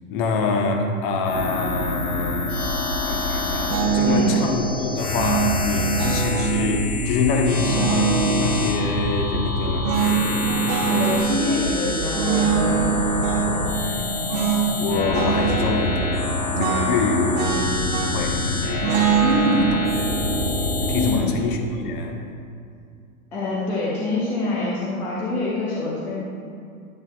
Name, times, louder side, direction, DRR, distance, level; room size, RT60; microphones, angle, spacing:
voice 1, 0.1-2.6 3.0-9.9 13.4-14.3 14.8-17.5 18.0-19.7 20.8-22.2, left 4 dB, 35° left, 2 dB, 1.2 m, -26 dB
sound 1, 1.2-21.2, left 2 dB, 90° left, 1.1 m, -26 dB
sound 2, 3.7-4.4 5.2-6.6 7.6-9.0 9.8-11.3 12.1-13.5 14.3-14.7 14.9-15.7 16.6-18.3 18.8-21.9, right 7 dB, 40° right, 1.2 m, -24 dB
voice 2, 10.9-12.8 19.2-19.8 20.9-21.3 23.3-26.1, left 3 dB, 5° left, -6 dB, 0.3 m, -25 dB
10.5 x 9.4 x 2.4 m, 2.4 s
figure-of-eight pair, 105°, 43 cm